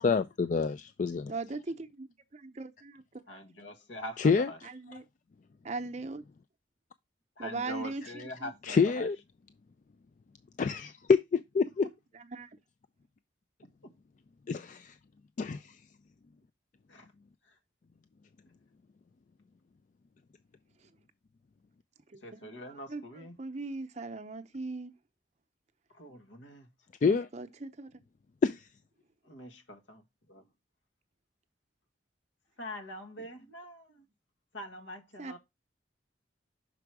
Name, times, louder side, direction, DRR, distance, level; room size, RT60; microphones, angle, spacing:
voice 1, 0.0-1.3 4.2-4.5 8.6-9.2 10.6-11.9 14.5-14.9 15.4-15.7 27.0-27.3 28.4-28.6, left 5 dB, 40° left, 0.3 m, -27 dB
voice 2, 1.3-3.4 4.6-5.0 5.6-6.2 7.4-8.8 12.1-12.5 20.8-20.9 22.1-22.4 22.7-24.9 27.1-27.9 33.2-33.3 35.2-35.4, right 3 dB, 35° right, 0.7 m, -40 dB
voice 3, 3.3-4.6 7.4-9.1 13.8-13.9 16.9-17.1 22.2-23.3 25.9-26.7 29.2-30.0 30.3-30.4 32.6-34.0 34.5-35.4, left 1 dB, 85° left, 1.5 m, -44 dB
6.1 x 4.6 x 4.7 m
head